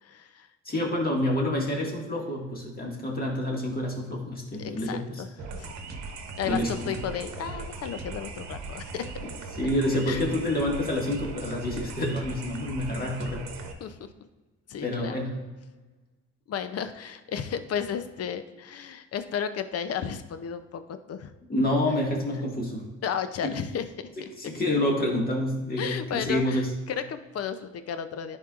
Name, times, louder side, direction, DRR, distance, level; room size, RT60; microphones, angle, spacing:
voice 1, 0.0-0.5 1.0-1.1 4.6-5.3 5.5-5.7 6.4-9.1 10.1-10.2 13.8-14.1 14.7-15.2 16.5-21.3 23.0-24.1 25.8-28.4, left 8 dB, 55° left, 10 dB, 0.6 m, -33 dB
voice 2, 0.7-5.2 6.4-6.7 9.6-13.4 14.8-15.3 21.5-22.9 23.4-23.5 24.5-26.7, left 1 dB, 30° left, -1 dB, 1.9 m, -28 dB
sound 1, 5.4-13.7, right 3 dB, 65° right, 1.0 m, -39 dB
10.5 x 4.5 x 2.5 m, 1.2 s
supercardioid pair, 75°, 30 cm